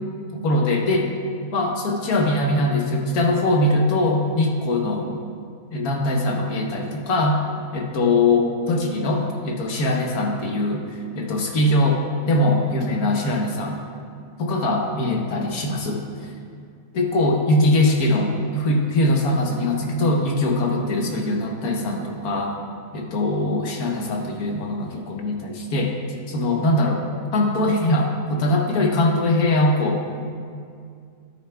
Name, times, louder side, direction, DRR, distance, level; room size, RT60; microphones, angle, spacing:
voice 1, 0.3-1.1 1.5-5.1 5.7-7.4 7.7-13.8 14.4-16.0 16.9-22.6 22.9-25.9 26.3-27.0 27.3-30.0, left 1 dB, 80° left, 1 dB, 1.5 m, -21 dB
13.5 x 9.2 x 2.3 m, 2.3 s
omnidirectional pair, 1.5 m